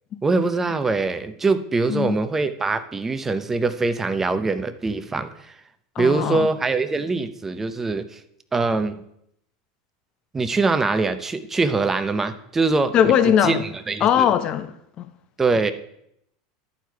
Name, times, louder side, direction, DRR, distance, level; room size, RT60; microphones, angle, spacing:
voice 1, 0.2-5.5 6.0-8.2 8.5-9.0 10.3-13.1 13.4-14.3 15.4-15.7, right 3 dB, 15° right, 0.7 m, -23 dB
voice 2, 6.0-6.5 12.9-13.6 14.0-15.1, left 9 dB, 45° left, 0.8 m, -20 dB
11.5 x 4.6 x 4.6 m
supercardioid pair, 110°, 2 cm